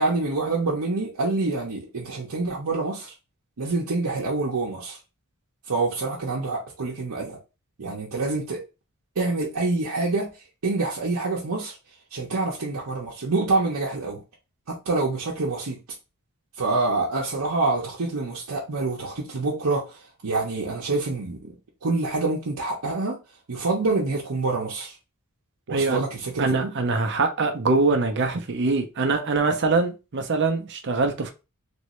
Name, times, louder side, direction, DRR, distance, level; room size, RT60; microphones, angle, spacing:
voice 1, 0.0-3.1 3.6-5.0 5.7-7.4 7.8-8.6 9.2-10.3 10.6-11.8 12.1-14.2 14.7-15.8 16.6-21.4 21.8-23.2 23.5-24.9 25.7-26.7, right 3 dB, 80° right, 0.8 m, -26 dB
voice 2, 25.7-26.0 26.4-31.3, right 3 dB, 50° right, 0.6 m, -23 dB
3.1 x 2.6 x 3.1 m
head